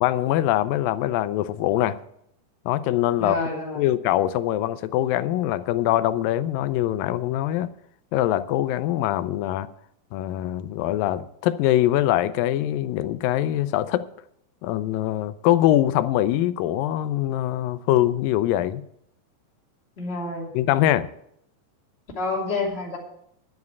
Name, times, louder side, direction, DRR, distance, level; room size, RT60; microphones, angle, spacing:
voice 1, 0.0-2.0 2.7-3.4 3.8-7.7 8.1-9.7 10.1-14.1 14.6-18.8 20.5-21.1, left 13 dB, 85° left, 2.3 m, -23 dB
voice 2, 3.2-3.8 20.0-20.5 22.2-23.0, left 3 dB, 20° left, 2.6 m, -28 dB
10.5 x 7.3 x 8.0 m
omnidirectional pair, 4.0 m